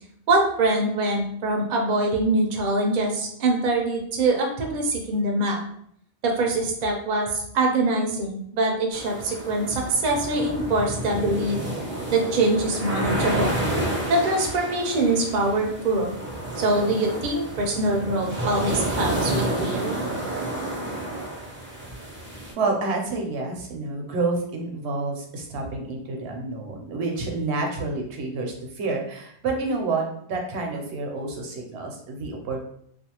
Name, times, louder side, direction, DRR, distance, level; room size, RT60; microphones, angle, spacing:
voice 1, 0.3-5.6 6.2-11.6 12.1-13.6 14.1-16.2 16.6-20.0, right 2 dB, 55° right, 1 dB, 0.6 m, -24 dB
sound 1, 8.9-22.5, right 1 dB, 15° right, 0.5 m, -30 dB
voice 2, 22.6-32.7, right 3 dB, 80° right, 1 dB, 0.9 m, -29 dB
2.4 x 2.3 x 2.8 m, 0.68 s
omnidirectional pair, 1.1 m